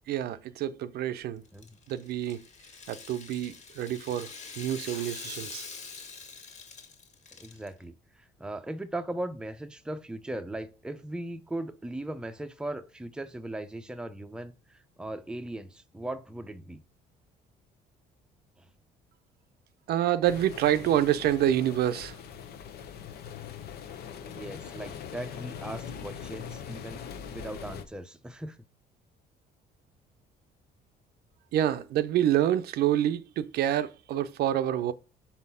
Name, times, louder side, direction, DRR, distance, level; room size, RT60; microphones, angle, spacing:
voice 1, 0.1-1.4 1.9-2.4 2.9-4.3 4.6-5.6 19.9-22.2 31.5-34.9, right 11 dB, 70° right, 0.6 m, -27 dB
Rattle (instrument), 1.4-7.7, left 5 dB, 45° left, 1.7 m, -44 dB
voice 2, 7.3-16.8 18.6-18.7 24.2-27.0 27.3-28.6, right 1 dB, 5° right, 0.6 m, -38 dB
sound 1, 20.2-27.8, left 7 dB, 65° left, 0.9 m, -42 dB
5.7 x 4.2 x 5.5 m
cardioid pair, 110°, 17 cm